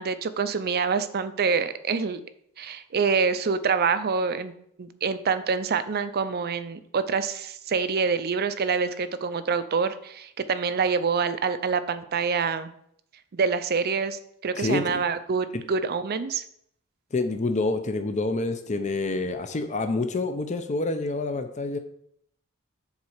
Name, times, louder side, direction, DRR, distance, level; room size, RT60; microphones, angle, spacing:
voice 1, 0.0-2.2 2.6-4.5 4.8-12.7 13.3-16.4, right 5 dB, 45° right, 12 dB, 0.5 m, -26 dB
voice 2, 14.5-15.0 15.5-15.6 17.1-21.8, left 2 dB, 35° left, 7 dB, 0.6 m, -27 dB
7.2 x 4.1 x 6.5 m, 0.70 s
head